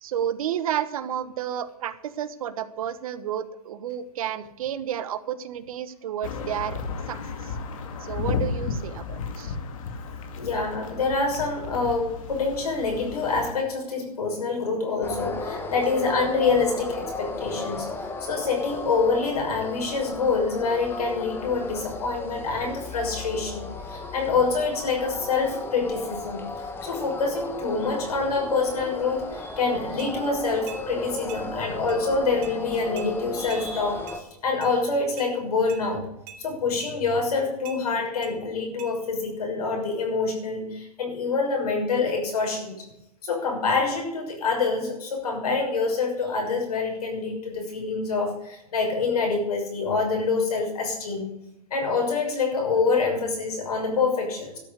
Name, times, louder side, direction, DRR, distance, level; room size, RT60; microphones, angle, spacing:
voice 1, 0.0-7.5 8.0-9.5, right 10 dB, 65° right, 13 dB, 1.3 m, -31 dB
sound 1, 6.2-13.5, left 5 dB, 60° left, 2.3 m, -33 dB
voice 2, 10.4-36.1 36.4-42.8 43.2-51.3 51.7-54.6, left 4 dB, 80° left, 1 dB, 6.4 m, -26 dB
sound 2, 15.0-34.2, left 3 dB, 10° left, 1.5 m, -35 dB
sound 3, 30.0-30.1 30.7-30.8 31.3-31.4 31.9-32.0 32.4-32.6 33.0-33.1 33.5-33.6 34.1-34.2 34.6-34.7 35.2-35.3 35.7-35.8 36.3-36.4 36.8-36.9 37.6-37.8 38.2-38.3 38.8-38.9, right 7 dB, 40° right, 3.8 m, -42 dB
13.0 x 7.2 x 8.2 m, 0.85 s
hypercardioid pair, 130°, 19 cm